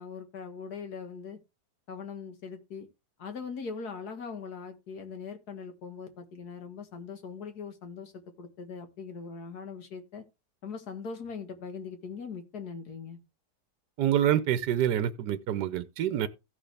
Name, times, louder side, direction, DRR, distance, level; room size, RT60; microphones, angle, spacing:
voice 1, 0.0-1.4 1.9-2.9 3.2-10.2 10.6-13.2, left 5 dB, 65° left, 2.0 m, -41 dB
voice 2, 14.0-16.3, right 11 dB, 80° right, 1.3 m, -26 dB
15.5 x 6.3 x 3.3 m
omnidirectional pair, 1.8 m